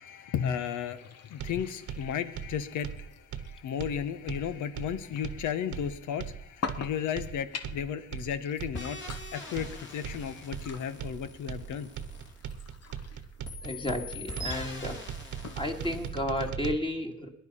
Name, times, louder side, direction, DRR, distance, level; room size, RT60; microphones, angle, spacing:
voice 1, 0.0-11.9, left 8 dB, 80° left, 12 dB, 1.2 m, -34 dB
sound 1, 0.6-16.5, left 5 dB, 55° left, 1.3 m, -47 dB
sound 2, 1.4-16.8, right 8 dB, 80° right, 1.2 m, -39 dB
sound 3, 8.7-13.0 13.4-16.1, left 2 dB, 40° left, 3.1 m, -43 dB
voice 2, 13.6-15.0 15.6-17.3, left 1 dB, 15° left, 3 dB, 2.2 m, -32 dB
20.0 x 10.5 x 5.7 m, 0.84 s
cardioid pair, 90°, 30 cm